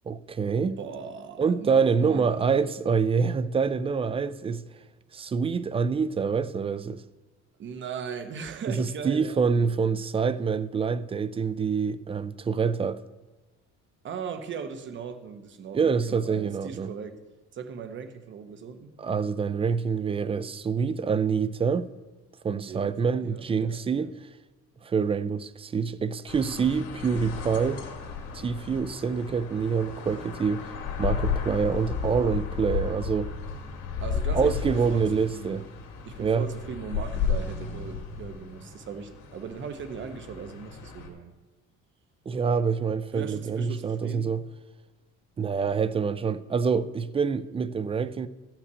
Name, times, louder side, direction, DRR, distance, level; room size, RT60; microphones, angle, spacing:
voice 1, 0.1-0.8 1.4-4.6 5.1-7.0 8.7-13.0 15.7-16.9 19.0-21.9 22.4-24.1 24.8-27.8 28.3-30.6 31.0-33.3 34.3-35.6 36.2-36.5 42.3-44.4 45.4-48.3, right 5 dB, 20° right, 0.4 m, -26 dB
voice 2, 0.8-2.5 7.6-9.8 14.0-17.2 17.5-18.9 22.7-22.9 23.2-24.1 34.0-35.7 36.1-41.3 43.1-44.3, right 6 dB, 40° right, 1.1 m, -39 dB
sound 1, 26.3-41.1, left 6 dB, 85° left, 2.3 m, -34 dB
13.5 x 5.9 x 8.1 m
cardioid pair, 145°, 29 cm